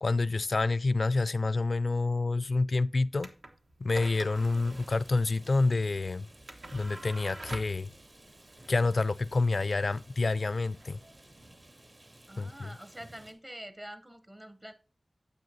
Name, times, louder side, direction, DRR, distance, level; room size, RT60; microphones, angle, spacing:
voice 1, 0.0-3.3 3.8-6.3 6.7-7.9 8.7-11.0 12.4-12.7, left 3 dB, 70° left, 0.3 m, -28 dB
sound 1, 3.2-11.7, right 2 dB, 80° right, 1.2 m, -48 dB
Rain, 4.3-13.3, right 1 dB, 60° right, 2.1 m, -56 dB
voice 2, 12.3-14.7, right 1 dB, 25° right, 0.8 m, -46 dB
9.3 x 7.8 x 2.8 m
cardioid pair, 45°, 0 cm